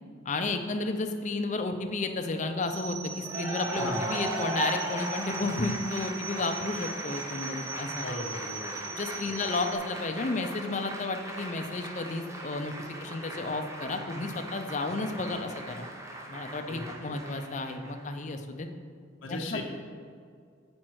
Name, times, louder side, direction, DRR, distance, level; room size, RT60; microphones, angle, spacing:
voice 1, 0.2-8.2 8.8-12.7 13.0-15.9 16.3-18.7 19.3-19.6, left 3 dB, 35° left, 6 dB, 0.5 m, -32 dB
sound 1, 2.6-9.8, right 4 dB, 55° right, 0.8 m, -41 dB
Cheering / Applause, 3.2-18.1, right 2 dB, 15° right, 0.5 m, -38 dB
voice 2, 3.7-4.1 8.0-8.7 9.2-9.3 16.7-17.2 19.2-19.6, left 1 dB, 80° left, 1 dB, 0.7 m, -38 dB
7.4 x 5.2 x 4.6 m, 2.1 s
head